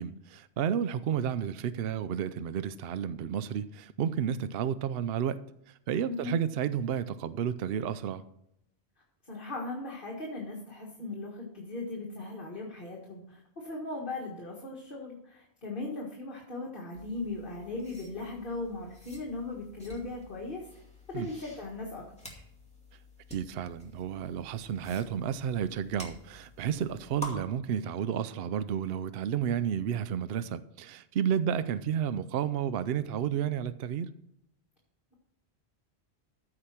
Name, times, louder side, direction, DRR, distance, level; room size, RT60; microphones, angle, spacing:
voice 1, 0.0-5.4 5.7-8.2 21.1-21.3 23.3-34.1, right 8 dB, 70° right, 0.8 m, -31 dB
voice 2, 9.3-20.7 21.1-22.4, left 2 dB, 50° left, 1.9 m, -38 dB
sound 1, 16.9-27.3, left 1 dB, 5° left, 2.3 m, -49 dB
14.0 x 5.0 x 5.9 m
omnidirectional pair, 1.1 m